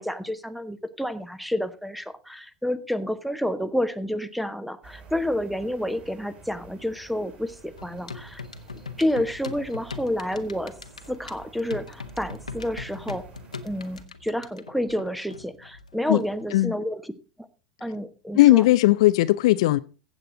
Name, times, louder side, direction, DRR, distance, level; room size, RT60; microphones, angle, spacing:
voice 1, 0.0-8.4 9.0-10.8 11.1-13.3 13.6-17.1 17.4-17.5 17.8-18.6, left 1 dB, ahead, 1.1 m, -29 dB
sound 1, 4.8-14.1, right 5 dB, 35° right, 3.6 m, -49 dB
sound 2, 7.8-16.6, left 4 dB, 85° left, 1.0 m, -41 dB
voice 2, 18.4-19.8, left 17 dB, 60° left, 0.5 m, -17 dB
15.5 x 7.8 x 3.9 m
figure-of-eight pair, 85°, 4 cm